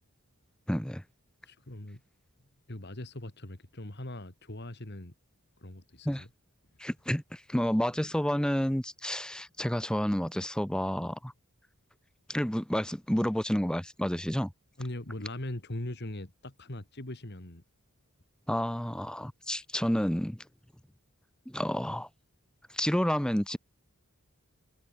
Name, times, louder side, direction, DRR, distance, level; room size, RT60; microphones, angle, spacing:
voice 1, 0.7-1.0 6.0-6.2 6.8-11.3 12.3-14.5 18.5-20.4 21.5-22.1 22.7-23.6, equal, 5° left, 1.0 m, -30 dB
voice 2, 1.4-2.0 2.7-5.1 5.6-6.3 14.8-17.6, left 1 dB, 50° left, 2.5 m, -40 dB
head